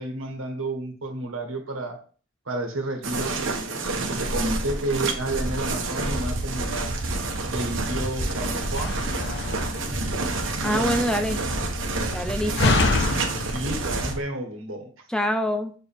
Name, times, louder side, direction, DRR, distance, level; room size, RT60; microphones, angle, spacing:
voice 1, 0.0-2.0 2.4-3.8 4.1-6.9 7.5-9.1 10.6-11.0 13.5-14.9, right 1 dB, 85° right, 1.4 m, -31 dB
sound 1, 3.0-14.1, right 2 dB, 65° right, 1.2 m, -28 dB
Slam, 8.6-14.2, left 2 dB, 60° left, 0.8 m, -28 dB
voice 2, 10.6-11.4 12.1-12.8 15.1-15.7, equal, 5° left, 0.6 m, -25 dB
6.5 x 4.6 x 3.5 m
head